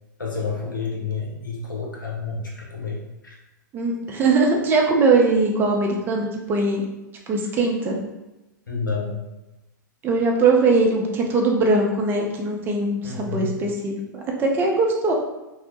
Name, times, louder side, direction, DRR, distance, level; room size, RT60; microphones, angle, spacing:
voice 1, 0.2-3.4 8.7-9.2 13.0-13.6, left 4 dB, 80° left, -2 dB, 0.7 m, -29 dB
voice 2, 3.7-6.8 7.3-8.0 10.0-15.1, right 3 dB, 20° right, 0 dB, 0.4 m, -21 dB
3.0 x 2.0 x 2.8 m, 0.98 s
figure-of-eight pair, 105°, 10 cm